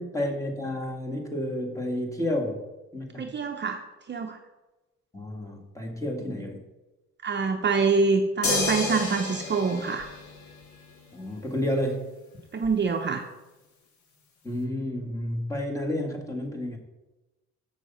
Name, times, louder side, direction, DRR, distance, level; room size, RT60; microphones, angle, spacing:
voice 1, 0.0-2.6 2.9-3.3 5.1-6.6 11.1-12.0 14.4-16.8, left 1 dB, 10° left, 1 dB, 1.8 m, -30 dB
voice 2, 3.2-3.8 4.1-4.4 7.2-10.1 12.5-13.3, right 4 dB, 35° right, 5 dB, 0.7 m, -25 dB
sound 1, 8.4-10.9 12.6-12.7, left 3 dB, 75° left, 1.7 m, -30 dB
7.1 x 6.3 x 5.6 m, 1.1 s
cardioid pair, 90°, 30 cm